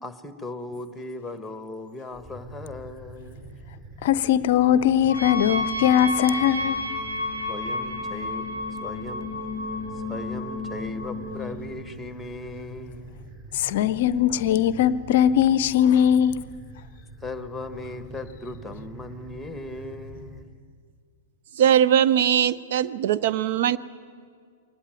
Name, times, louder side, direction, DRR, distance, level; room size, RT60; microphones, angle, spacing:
voice 1, 0.0-3.5 7.5-8.5 8.8-9.3 10.0-13.3 17.2-20.5, left 2 dB, 5° left, 1.4 m, -38 dB
sound 1, 2.1-20.4, right 2 dB, 25° right, 3.5 m, -45 dB
voice 2, 4.0-6.8 13.5-16.5, left 10 dB, 50° left, 0.6 m, -20 dB
sound 2, 5.1-11.5, left 2 dB, 80° right, 3.7 m, -31 dB
voice 3, 21.6-23.8, right 10 dB, 50° right, 0.5 m, -20 dB
22.5 x 19.0 x 9.3 m
figure-of-eight pair, 100°, 0 cm